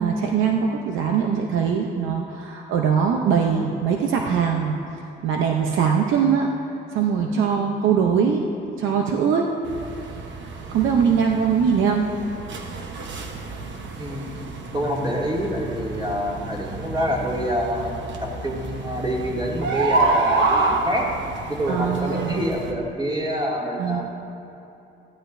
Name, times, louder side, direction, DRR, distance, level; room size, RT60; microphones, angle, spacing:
voice 1, 0.0-4.8 5.2-6.5 6.9-8.4 8.8-9.5 10.7-12.1 21.7-22.4 23.8-24.0, right 7 dB, 85° right, 1 dB, 0.7 m, -21 dB
sound 1, 9.6-22.7, right 3 dB, 70° right, 1.0 m, -28 dB
voice 2, 14.0-14.4 14.7-17.9 18.2-21.1 21.5-24.0, equal, 20° right, -4 dB, 2.4 m, -26 dB
15.0 x 11.0 x 2.6 m, 2.8 s
cardioid pair, 90°, 20 cm